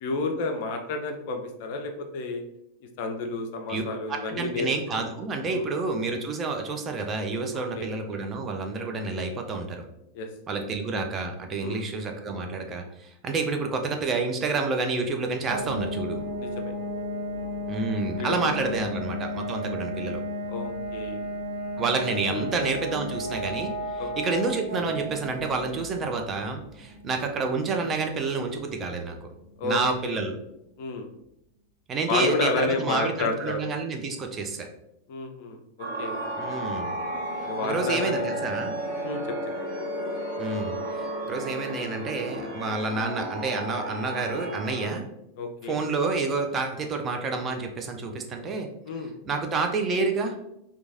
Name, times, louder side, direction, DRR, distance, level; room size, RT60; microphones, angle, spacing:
voice 1, 0.0-2.4 3.0-4.7 4.9-5.0 5.5-5.7 7.5-7.9 10.1-10.3 11.6-11.8 16.4-16.7 18.2-18.4 20.5-21.3 22.3-22.5 24.0-24.1 29.6-30.2 30.8-31.1 32.1-33.6 35.1-36.2 37.4-38.3 39.0-39.2 45.4-45.8 48.8-49.1, left 3 dB, 50° left, 4 dB, 0.4 m, -30 dB
voice 2, 4.1-9.8 10.5-16.2 17.7-20.2 21.8-29.3 29.6-30.3 31.9-34.7 36.4-36.9 37.6-38.7 40.4-45.0 45.6-48.7 49.2-50.3, right 3 dB, 25° right, 3 dB, 0.4 m, -29 dB
sound 1, 15.5-30.1, equal, 75° right, 1.0 m, -34 dB
sound 2, 35.8-44.9, right 1 dB, 55° right, 1.2 m, -33 dB
3.0 x 2.2 x 2.5 m, 0.82 s
figure-of-eight pair, 90°, 0 cm